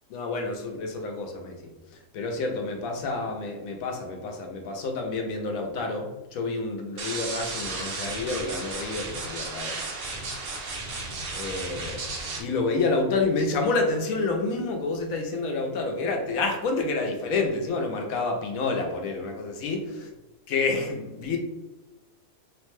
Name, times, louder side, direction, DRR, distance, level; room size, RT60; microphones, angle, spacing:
voice 1, 0.1-1.6 2.1-9.8 10.1-10.2 11.3-12.1 12.4-20.0 20.5-21.4, left 3 dB, 75° left, 3 dB, 1.0 m, -28 dB
sound 1, 7.0-12.4, right 3 dB, 60° right, 0.6 m, -34 dB
3.2 x 2.1 x 3.1 m, 1.0 s
omnidirectional pair, 1.5 m